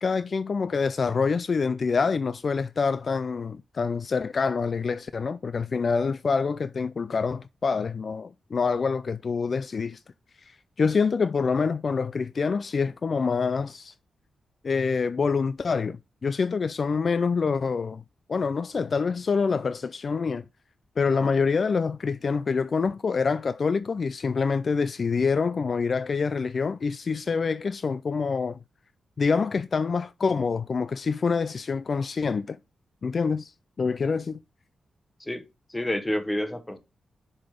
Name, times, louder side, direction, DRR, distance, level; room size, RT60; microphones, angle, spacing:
voice 1, 0.0-10.0 10.5-13.9 14.6-18.0 18.3-20.4 21.0-28.6 29.2-32.6 33.0-33.5 33.8-34.4, left 5 dB, 50° left, 0.3 m, -26 dB
voice 2, 35.2-36.8, left 1 dB, 15° left, 1.2 m, -29 dB
6.8 x 3.8 x 5.0 m
cardioid pair, 85°, 0 cm